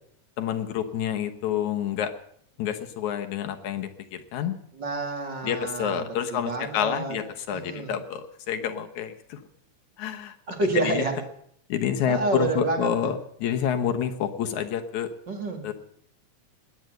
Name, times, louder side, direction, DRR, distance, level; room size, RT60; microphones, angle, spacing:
voice 1, 0.4-2.1 2.6-4.6 5.4-9.4 10.0-10.6 10.8-11.0 11.7-15.1 15.6-15.7, left 9 dB, 75° left, 6 dB, 2.5 m, -28 dB
voice 2, 4.7-7.2 7.5-7.9 10.5-11.2 12.1-13.1 15.3-15.7, right 3 dB, 40° right, 3 dB, 2.5 m, -29 dB
20.0 x 8.9 x 7.8 m, 0.65 s
omnidirectional pair, 3.4 m